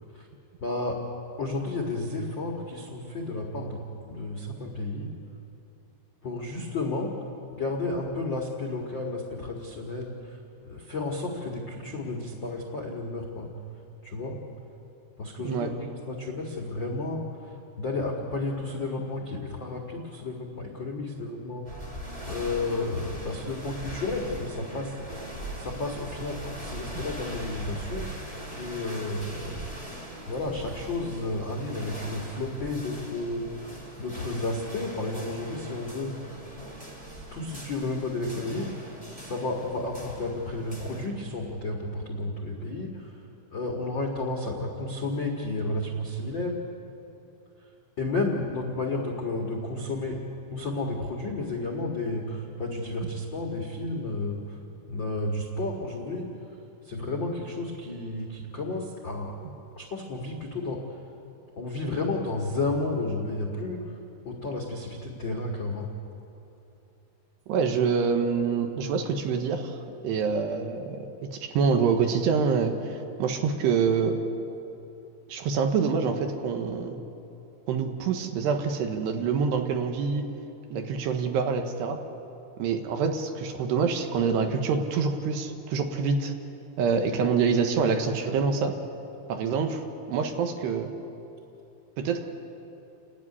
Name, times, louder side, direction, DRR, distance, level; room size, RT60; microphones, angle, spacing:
voice 1, 0.6-1.0 1.4-3.8 4.1-5.1 6.2-7.1 7.5-10.4 10.6-13.5 14.0-14.4 15.2-24.9 25.5-28.1 28.5-29.6 30.3-36.4 37.3-38.9 39.2-43.2 43.5-46.6 48.0-50.2 50.5-54.6 54.9-56.3 56.8-59.4 59.7-60.8 61.6-63.8 64.2-65.9, left 2 dB, 85° left, 0 dB, 1.0 m, -32 dB
sound 1, 21.6-41.1, right 1 dB, 15° right, 1.5 m, -41 dB
voice 2, 67.5-69.8 70.0-74.2 75.3-77.0 77.7-80.3 80.7-82.0 82.6-86.3 86.8-88.8 89.3-90.9 92.0-92.3, right 5 dB, 70° right, 5 dB, 3.1 m, -26 dB
29.5 x 12.5 x 9.8 m, 2.9 s
omnidirectional pair, 5.4 m